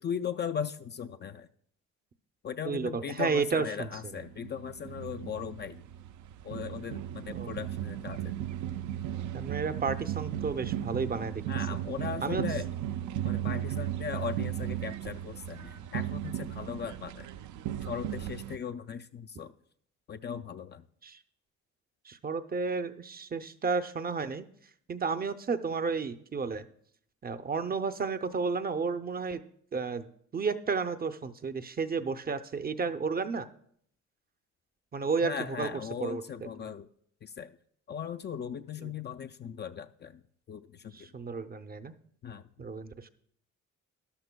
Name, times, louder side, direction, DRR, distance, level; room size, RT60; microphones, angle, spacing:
voice 1, 0.0-1.5 2.4-5.8 6.4-8.4 11.5-12.7 13.2-17.3 17.8-19.5 20.1-20.9 35.2-36.9 37.2-37.5 37.9-40.2 40.5-41.1 42.2-42.4, left 7 dB, 35° left, 8 dB, 0.4 m, -38 dB
voice 2, 2.7-3.9 7.3-7.5 9.3-11.4 12.2-12.4 21.0-21.2 22.1-24.5 24.9-26.7 27.2-29.4 29.7-30.1 30.3-33.5 34.9-35.7 36.0-36.2 40.9-41.9 42.6-43.1, right 5 dB, 30° right, 11 dB, 0.6 m, -32 dB
sound 1, 4.0-18.6, right 11 dB, 75° right, 0.6 m, -36 dB
13.0 x 11.5 x 2.2 m, 0.67 s
cardioid pair, 90°, 30 cm